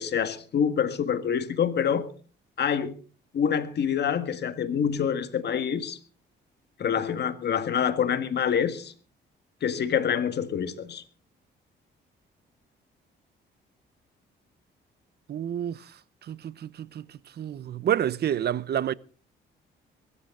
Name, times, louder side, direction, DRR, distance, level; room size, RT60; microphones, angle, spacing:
voice 1, 0.0-2.1 2.6-2.9 3.3-6.0 6.8-8.9 9.6-11.0, left 7 dB, 55° left, 1.7 m, -26 dB
voice 2, 15.3-18.9, right 10 dB, 55° right, 0.7 m, -29 dB
23.0 x 13.0 x 3.8 m
cardioid pair, 90°, 20 cm